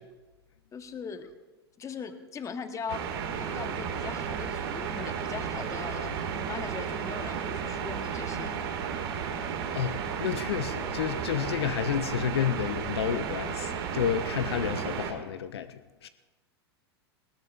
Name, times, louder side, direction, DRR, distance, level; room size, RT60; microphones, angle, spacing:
voice 1, 0.7-1.3 1.8-3.0 3.3-6.2 6.4-8.5, left 6 dB, 20° left, 1.2 m, -40 dB
sound 1, 2.9-15.1, right 7 dB, 65° right, 2.3 m, -33 dB
voice 2, 9.7-16.1, left 9 dB, 70° left, 0.7 m, -31 dB
20.0 x 17.5 x 2.6 m
hypercardioid pair, 95°, 14 cm